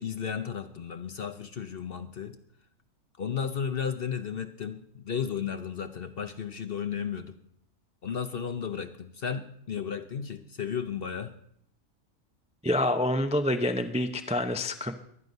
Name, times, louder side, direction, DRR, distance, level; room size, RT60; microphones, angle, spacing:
voice 1, 0.0-2.3 3.2-7.4 8.0-11.3, left 7 dB, 50° left, 9 dB, 0.8 m, -34 dB
voice 2, 12.6-14.9, left 1 dB, 10° right, 8 dB, 0.3 m, -27 dB
23.5 x 9.6 x 5.4 m, 0.69 s
omnidirectional pair, 1.6 m